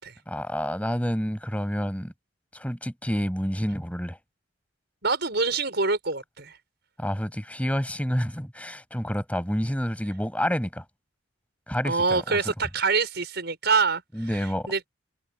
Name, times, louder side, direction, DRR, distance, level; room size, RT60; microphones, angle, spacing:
voice 1, 0.3-2.1 2.5-4.2 7.0-10.8 11.7-12.5 14.1-14.7, equal, 5° left, 7.3 m, -29 dB
voice 2, 5.0-6.6 11.8-14.0 14.3-14.4 14.7-14.8, right 4 dB, 55° right, 6.6 m, -25 dB
head